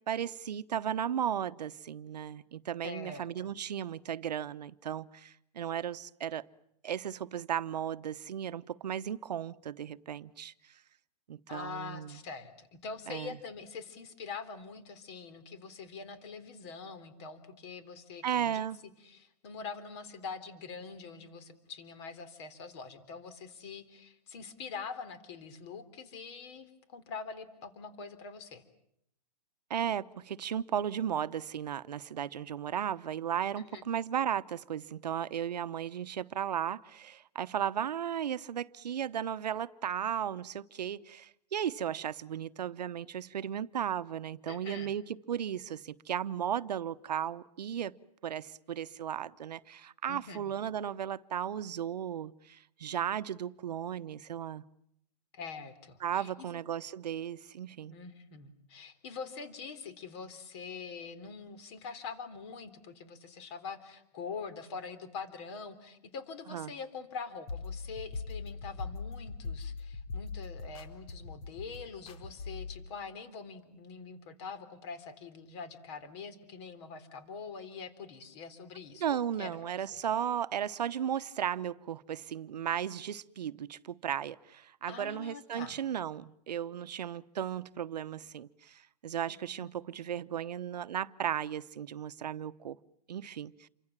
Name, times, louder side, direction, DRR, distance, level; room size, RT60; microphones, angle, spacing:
voice 1, 0.1-6.4 6.8-10.5 11.3-12.2 13.1-13.4 18.2-18.8 29.7-48.0 48.2-54.6 56.0-57.9 66.5-66.7 79.0-92.8 93.1-93.7, right 9 dB, 80° right, 1.0 m, -35 dB
voice 2, 2.8-3.5 11.5-18.7 19.0-28.6 33.5-33.9 44.5-44.9 50.1-50.5 55.3-56.6 57.9-80.0 84.9-85.8 89.3-89.7, left 5 dB, 40° left, 3.7 m, -44 dB
sound 1, 67.5-72.7, left 4 dB, 60° left, 4.4 m, -41 dB
28.0 x 24.5 x 7.5 m
hypercardioid pair, 155°, 21 cm